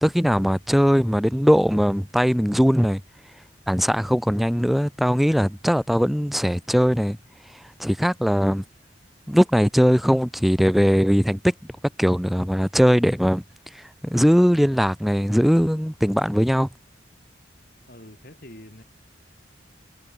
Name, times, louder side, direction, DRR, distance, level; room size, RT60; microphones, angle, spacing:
voice 1, 0.0-3.0 3.7-7.2 7.8-8.6 9.3-11.5 12.0-13.4 14.0-16.7, equal, ahead, 0.6 m, -20 dB
voice 2, 17.9-18.8, left 1 dB, 50° left, 4.7 m, -44 dB
head